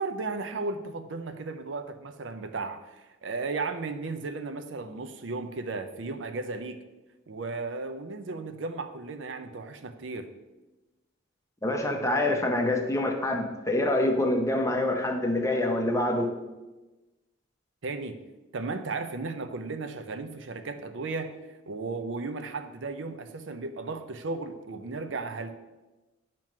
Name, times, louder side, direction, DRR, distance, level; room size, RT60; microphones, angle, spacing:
voice 1, 0.0-2.9 3.2-6.8 7.3-10.3 17.8-18.2 18.5-21.3 21.7-25.6, right 3 dB, 70° right, 8 dB, 0.6 m, -35 dB
voice 2, 11.6-16.3, left 1 dB, 15° left, 3 dB, 0.7 m, -26 dB
9.0 x 3.0 x 6.0 m, 1.1 s
head